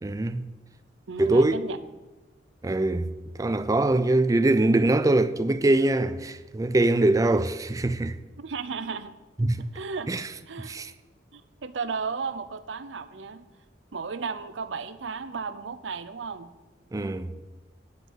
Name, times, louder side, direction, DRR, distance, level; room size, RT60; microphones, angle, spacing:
voice 1, 0.0-0.4 1.2-1.6 2.6-3.1 3.4-8.2 9.4-9.7 10.1-10.3 10.7-10.9 16.9-17.3, right 2 dB, 20° right, 0.4 m, -23 dB
voice 2, 1.1-1.8 8.4-9.2 9.7-10.1 10.5-10.7 11.3-13.5 13.9-16.5, right 5 dB, 85° right, 0.6 m, -34 dB
9.4 x 5.1 x 7.8 m
head